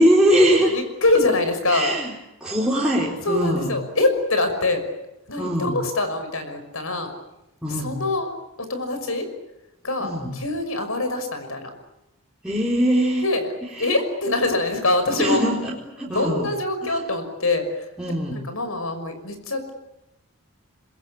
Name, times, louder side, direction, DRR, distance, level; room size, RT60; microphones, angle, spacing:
voice 1, 0.0-0.8 1.7-2.1 2.4-3.8 5.4-5.8 7.6-8.0 10.0-10.4 12.4-13.3 13.6-13.9 15.2-16.5 16.8-17.0 18.0-18.4, equal, 5° right, -5 dB, 4.0 m, -22 dB
voice 2, 0.7-1.9 3.3-4.8 5.3-7.1 7.7-8.3 8.7-9.3 9.8-11.7 13.2-13.5 13.8-15.4 16.1-17.7 18.3-19.7, left 2 dB, 70° left, 8 dB, 6.1 m, -24 dB
27.0 x 22.0 x 8.7 m, 0.89 s
head